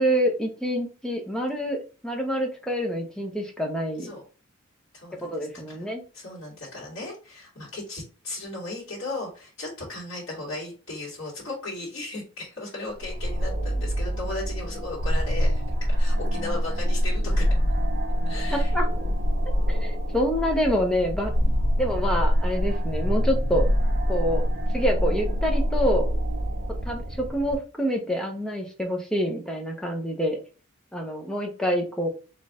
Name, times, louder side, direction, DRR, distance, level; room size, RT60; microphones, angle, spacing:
voice 1, 0.0-1.8 2.0-4.1 5.2-6.0 18.5-18.9 19.7-23.6 24.1-24.4 24.7-26.1 26.9-30.4 30.9-32.1, equal, 5° left, 1 dB, 0.8 m, -27 dB
voice 2, 4.9-5.3 5.7-5.8 6.1-15.6 16.0-17.5 18.3-18.7, left 2 dB, 60° left, -6 dB, 2.1 m, -36 dB
sound 1, 13.0-27.5, equal, 50° right, 1.2 m, -25 dB
4.2 x 3.1 x 3.7 m, 0.36 s
head